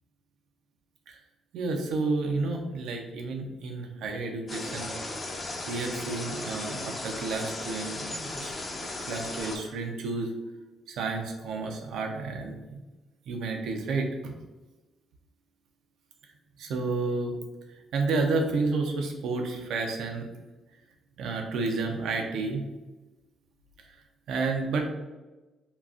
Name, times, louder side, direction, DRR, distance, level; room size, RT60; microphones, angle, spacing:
voice 1, 1.5-5.0 5.7-8.5 9.1-10.3 10.9-12.8 13.3-14.3 16.6-17.3 17.9-20.3 21.2-22.7 23.8-23.9 24.3-24.9, right 3 dB, 80° right, 3 dB, 0.5 m, -30 dB
sound 1, 4.5-9.6, left 2 dB, 35° left, 0.6 m, -36 dB
3.8 x 2.3 x 2.4 m, 1.1 s
cardioid pair, 90°, 0 cm